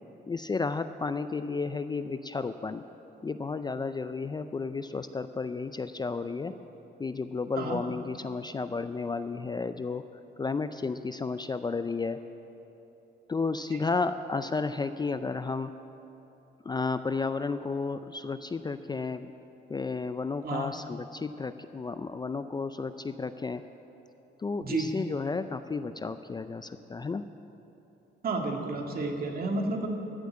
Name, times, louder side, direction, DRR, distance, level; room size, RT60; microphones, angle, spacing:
voice 1, 0.3-2.8 3.2-6.5 7.0-10.0 10.4-12.2 13.3-15.7 16.6-19.3 19.7-23.6 24.4-27.3, left 4 dB, 20° left, 11 dB, 0.4 m, -32 dB
voice 2, 28.2-29.9, right 3 dB, 50° right, 2 dB, 1.9 m, -31 dB
14.0 x 8.0 x 8.4 m, 3.0 s
cardioid pair, 90°, 20 cm